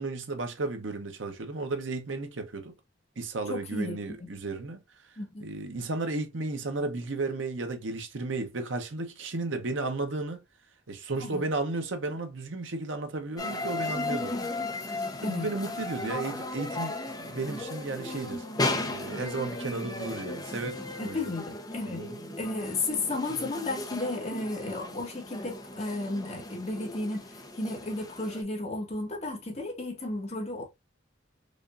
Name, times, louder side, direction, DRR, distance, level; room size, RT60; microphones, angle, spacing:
voice 1, 0.0-2.7 3.2-4.8 5.4-10.4 10.9-14.4 15.2-21.2 21.8-22.2 23.3-23.4, right 3 dB, 85° right, 0.9 m, -34 dB
voice 2, 3.5-4.3 5.2-5.5 11.2-11.5 14.3-14.5 15.2-15.5 21.0-22.1 22.4-30.6, left 2 dB, 35° left, 1.5 m, -33 dB
sound 1, 13.4-28.4, left 2 dB, 20° left, 0.8 m, -36 dB
5.0 x 2.5 x 2.5 m
head